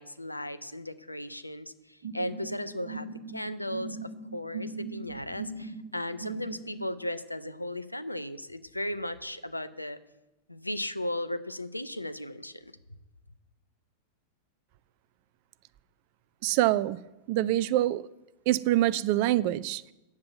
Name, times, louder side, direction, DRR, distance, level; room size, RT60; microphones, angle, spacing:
voice 1, 0.0-10.0 10.5-12.7, left 1 dB, 85° left, 0.6 m, -36 dB
sound 1, 2.0-6.8, right 4 dB, 65° right, 1.4 m, -40 dB
voice 2, 16.4-17.0 17.3-18.0 18.5-19.9, right 14 dB, 45° right, 0.4 m, -25 dB
9.6 x 7.7 x 7.7 m
figure-of-eight pair, 90°, 0 cm